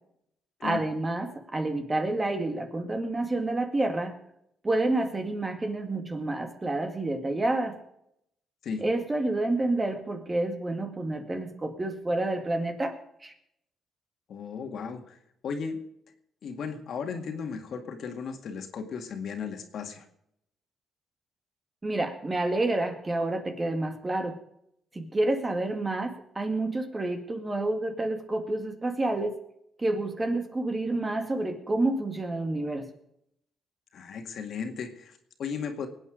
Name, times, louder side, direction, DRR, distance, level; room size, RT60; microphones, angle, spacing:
voice 1, 0.6-4.2 4.6-7.8 8.8-13.0 13.2-13.3 21.8-24.4 24.9-29.4 29.8-32.9, right 2 dB, 25° right, 6 dB, 2.1 m, -29 dB
voice 2, 14.3-15.2 15.4-15.8 16.4-20.1 33.9-35.9, left 6 dB, 65° left, 5 dB, 2.1 m, -35 dB
21.0 x 8.9 x 5.1 m, 0.77 s
cardioid pair, 90°, 0 cm